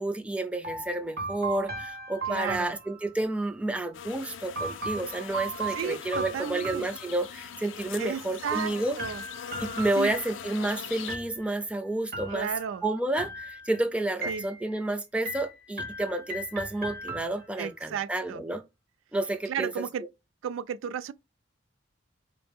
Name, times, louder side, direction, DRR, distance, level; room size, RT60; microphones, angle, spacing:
voice 1, 0.0-9.0 9.6-12.5 12.8-18.6 19.1-19.8, right 2 dB, 5° right, 0.4 m, -30 dB
sound 1, 0.6-3.4 4.6-7.6 8.5-10.7 11.1-11.7 12.1-12.8 13.2-13.8 14.2-14.9 15.3-17.7, right 3 dB, 50° right, 0.9 m, -37 dB
voice 2, 2.3-2.7 5.7-6.9 8.0-9.2 10.0-10.1 12.3-12.8 14.3-14.5 17.6-18.4 19.5-20.0 20.4-21.1, right 7 dB, 85° right, 0.3 m, -34 dB
sound 2, 3.9-11.2, left 8 dB, 70° left, 0.4 m, -41 dB
4.5 x 2.0 x 3.5 m
head